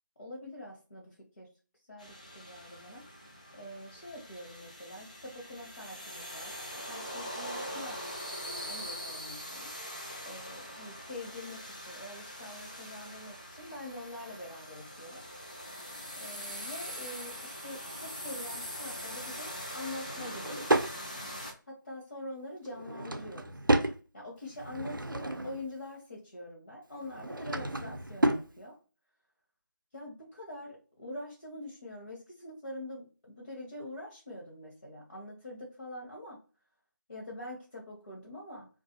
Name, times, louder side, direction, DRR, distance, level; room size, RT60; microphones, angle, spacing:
voice 1, 0.2-1.5 1.9-3.0 3.5-8.0 8.4-9.7 10.2-15.2 16.1-21.1 21.7-23.5 24.1-28.8 29.9-36.4 37.1-38.7, left 1 dB, 50° left, -3 dB, 0.8 m, -45 dB
sound 1, 2.0-21.5, equal, 25° left, 0.3 m, -42 dB
Drawer open or close / Wood, 20.0-20.9 22.7-24.0 24.5-25.7 27.0-28.5, right 1 dB, 90° right, 0.4 m, -31 dB
2.3 x 2.2 x 2.7 m, 0.35 s
figure-of-eight pair, 165°, 11 cm